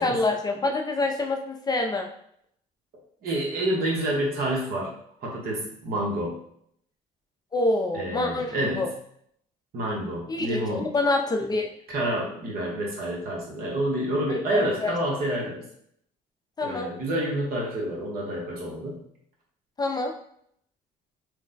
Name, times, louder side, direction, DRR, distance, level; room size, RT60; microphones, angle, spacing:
voice 1, 0.0-2.1 7.5-8.9 10.3-11.7 14.3-14.9 16.6-16.9 19.8-20.1, left 2 dB, 25° left, 2 dB, 0.4 m, -26 dB
voice 2, 3.2-4.9 5.2-6.4 7.9-8.9 9.7-10.9 11.9-15.7 16.6-19.0, right 1 dB, 60° right, -2 dB, 1.2 m, -28 dB
3.2 x 2.1 x 3.8 m, 0.67 s
cardioid pair, 110°, 17 cm